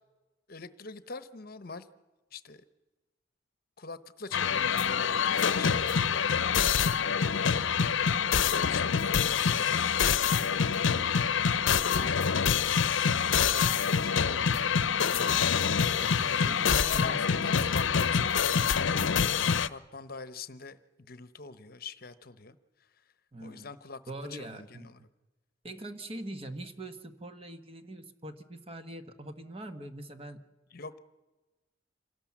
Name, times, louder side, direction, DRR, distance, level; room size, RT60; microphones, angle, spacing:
voice 1, 0.5-1.9 2.3-2.6 3.8-7.0 7.3-10.2 11.9-12.3 13.4-15.7 16.4-22.6 23.4-24.0 24.3-25.0 30.7-31.0, left 4 dB, 50° left, 13 dB, 0.9 m, -44 dB
sound 1, 4.3-19.7, left 7 dB, 80° left, 0.7 m, -26 dB
voice 2, 16.0-17.2 23.3-23.7 24.1-24.9 25.6-30.4, right 1 dB, 30° right, 8 dB, 1.3 m, -43 dB
27.0 x 18.0 x 7.3 m, 1.2 s
head